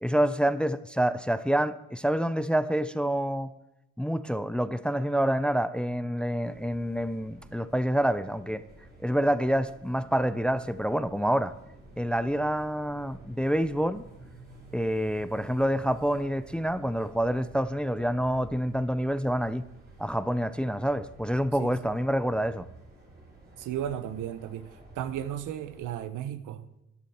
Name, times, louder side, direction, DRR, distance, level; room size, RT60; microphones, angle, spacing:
voice 1, 0.0-3.5 4.0-8.6 9.0-11.5 12.0-14.0 14.7-19.6 20.0-22.7, equal, 5° left, 0.4 m, -27 dB
sound 1, 6.4-25.8, right 2 dB, 30° right, 5.3 m, -52 dB
voice 2, 23.6-26.7, right 10 dB, 85° right, 0.9 m, -35 dB
13.0 x 11.0 x 4.3 m
cardioid pair, 90°, 30 cm